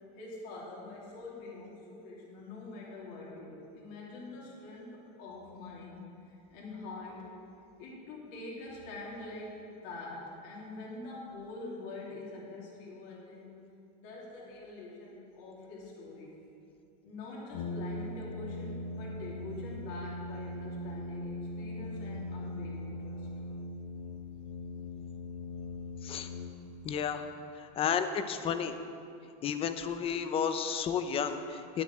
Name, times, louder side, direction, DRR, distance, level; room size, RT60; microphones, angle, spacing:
voice 1, 0.1-6.0 6.5-7.3 7.8-13.6 14.0-16.4 17.0-23.3, left 2 dB, 60° left, -5 dB, 3.2 m, -45 dB
Brass instrument, 17.5-27.0, left 2 dB, 80° left, 0.8 m, -40 dB
voice 2, 26.8-27.2 27.6-28.8 29.4-31.8, left 7 dB, 25° left, 9 dB, 0.7 m, -32 dB
10.5 x 7.7 x 7.4 m, 2.5 s
supercardioid pair, 145°, 21 cm